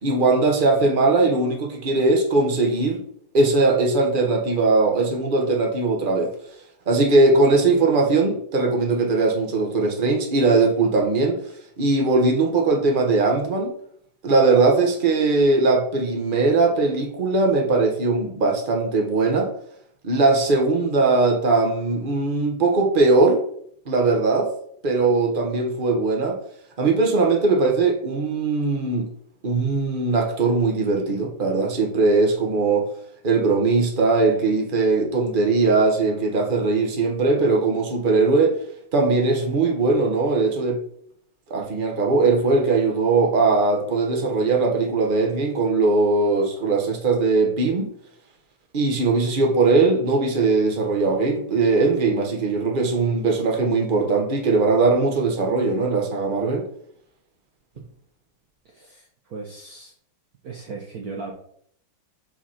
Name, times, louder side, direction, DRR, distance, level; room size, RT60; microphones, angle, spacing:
voice 1, 0.0-3.0 3.3-6.3 6.9-11.4 11.8-13.7 14.2-19.5 20.0-23.4 23.8-24.5 24.8-26.4 26.8-29.1 29.4-32.9 33.2-38.6 38.9-40.8 41.5-47.9 48.7-56.7, right 3 dB, 30° right, 1.2 m, -20 dB
voice 2, 58.6-59.9 60.4-61.3, right 4 dB, 55° right, 1.2 m, -37 dB
5.5 x 5.2 x 5.7 m
omnidirectional pair, 2.2 m